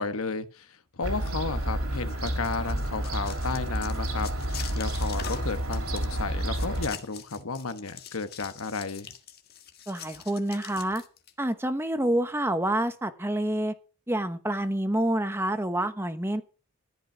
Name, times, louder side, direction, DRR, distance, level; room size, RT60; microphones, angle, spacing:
voice 1, 0.0-4.3 4.7-9.1, left 4 dB, 85° left, 1.2 m, -33 dB
Fowl / Gull seagull, 1.0-6.9, right 1 dB, 85° right, 3.2 m, -30 dB
sound 1, 2.0-11.3, left 7 dB, 45° left, 1.6 m, -43 dB
voice 2, 9.9-11.0 11.4-13.7 14.1-16.4, right 1 dB, 10° right, 1.0 m, -27 dB
14.0 x 5.4 x 9.0 m
head